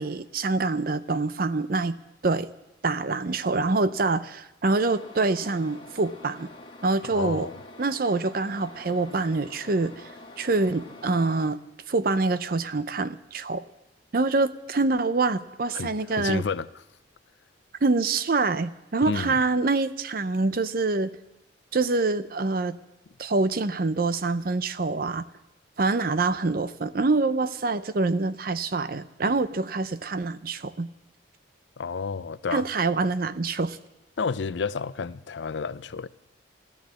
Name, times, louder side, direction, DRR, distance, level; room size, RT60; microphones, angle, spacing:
voice 1, 0.0-2.0 2.2-2.5 2.8-6.5 6.8-7.5 7.8-10.1 10.4-11.6 11.9-13.6 14.1-16.5 17.8-21.1 21.7-22.8 23.2-25.2 25.8-30.9 32.5-33.8, right 3 dB, 50° right, 0.6 m, -25 dB
sound 1, 4.8-11.5, left 2 dB, 25° left, 1.7 m, -47 dB
voice 2, 7.1-7.6 15.7-16.7 19.1-19.4 31.8-32.7 34.2-36.1, left 5 dB, 70° left, 0.5 m, -30 dB
13.5 x 13.5 x 7.6 m
head